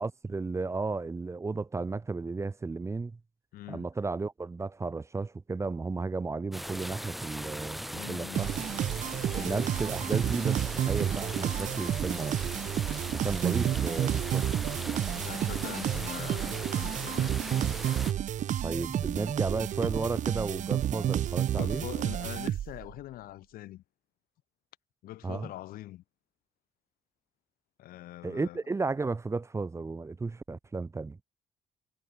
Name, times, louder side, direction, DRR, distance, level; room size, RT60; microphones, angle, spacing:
voice 1, 0.0-3.2 3.7-8.5 9.3-12.4 13.1-14.5 18.6-21.9 25.2-25.5 28.2-31.2, right 3 dB, 20° right, 1.2 m, -33 dB
voice 2, 3.5-3.9 7.9-8.5 9.3-9.7 15.1-17.7 21.6-23.8 25.0-26.0 27.8-28.6, left 15 dB, 85° left, 3.5 m, -43 dB
sound 1, 6.5-18.1, equal, ahead, 2.6 m, -39 dB
sound 2, 8.3-22.9, right 11 dB, 55° right, 1.1 m, -30 dB
cardioid pair, 125°, 15 cm